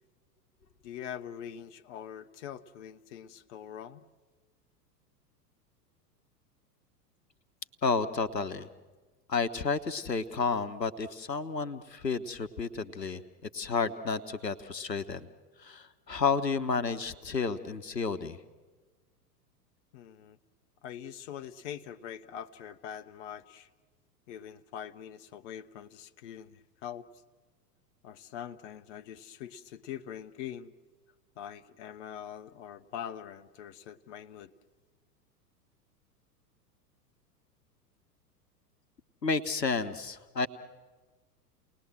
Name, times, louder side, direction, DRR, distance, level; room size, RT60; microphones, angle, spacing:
voice 1, 0.8-4.0 19.9-20.4 20.8-23.7 24.3-27.1 28.0-30.7 31.4-34.5, left 9 dB, 45° left, 8 dB, 0.9 m, -43 dB
voice 2, 7.8-8.7 9.3-15.3 15.6-18.4 39.2-40.5, left 4 dB, 90° left, 11 dB, 1.0 m, -31 dB
29.5 x 19.5 x 7.7 m, 1.3 s
figure-of-eight pair, 90°, 48 cm